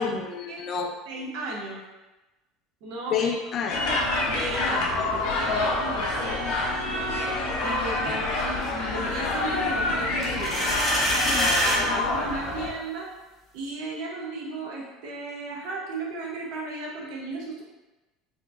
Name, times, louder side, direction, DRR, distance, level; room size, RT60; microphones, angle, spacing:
voice 1, 0.0-1.0 3.1-4.0 8.1-8.2 11.2-11.5, left 6 dB, 30° left, 4 dB, 0.3 m, -29 dB
voice 2, 1.1-1.8 2.8-3.3 4.3-6.7 7.6-10.6 11.6-13.1 13.5-17.6, right 2 dB, 50° right, -3 dB, 0.8 m, -35 dB
sound 1, 3.7-12.7, left 2 dB, 60° left, 0.9 m, -27 dB
sound 2, 10.2-11.8, equal, 5° right, 0.6 m, -24 dB
4.5 x 3.0 x 2.5 m, 1.1 s
cardioid pair, 180°, 0 cm